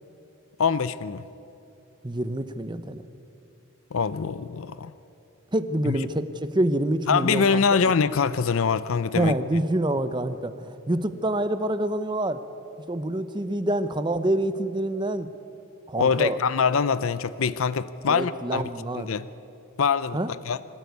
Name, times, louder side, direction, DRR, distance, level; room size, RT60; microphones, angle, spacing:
voice 1, 0.6-1.3 3.9-4.9 5.9-6.0 7.1-9.3 16.0-18.6 18.9-19.3 19.8-20.2 20.5-20.6, left 5 dB, 70° left, 0.6 m, -24 dB
voice 2, 2.0-3.0 5.5-7.6 9.1-12.4 12.9-15.3 15.9-16.4 18.1-19.1 20.1-20.3, right 1 dB, 20° right, 0.8 m, -26 dB
25.0 x 13.0 x 9.5 m
head